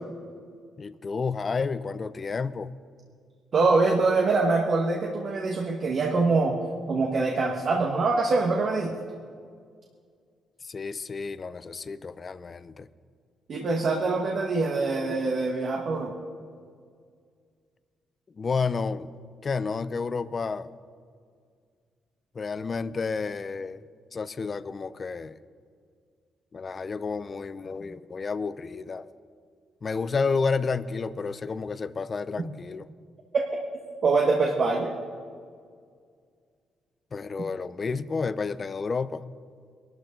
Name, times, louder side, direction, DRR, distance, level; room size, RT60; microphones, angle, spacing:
voice 1, 0.8-2.7 10.6-12.9 18.3-19.1 19.4-20.7 22.3-25.4 26.5-29.1 29.8-32.9 37.1-39.2, left 4 dB, 35° left, 15 dB, 0.6 m, -31 dB
voice 2, 3.5-6.6 6.9-8.9 13.5-16.1 33.3-33.4 34.0-34.9, right 3 dB, 50° right, 0 dB, 1.4 m, -24 dB
22.0 x 12.5 x 3.8 m, 2.1 s
cardioid pair, 90°, 0 cm